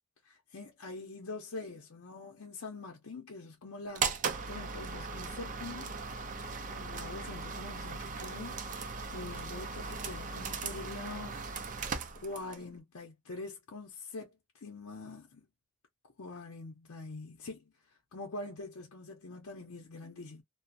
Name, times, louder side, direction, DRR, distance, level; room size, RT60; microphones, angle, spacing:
voice 1, 0.2-4.2 4.5-5.9 6.7-8.7 9.1-11.3 12.2-15.4 16.2-17.7 18.1-20.4, left 3 dB, 65° left, 0.6 m, -44 dB
sound 1, 3.9-12.7, right 5 dB, 35° right, 0.4 m, -38 dB
2.4 x 2.0 x 2.5 m
head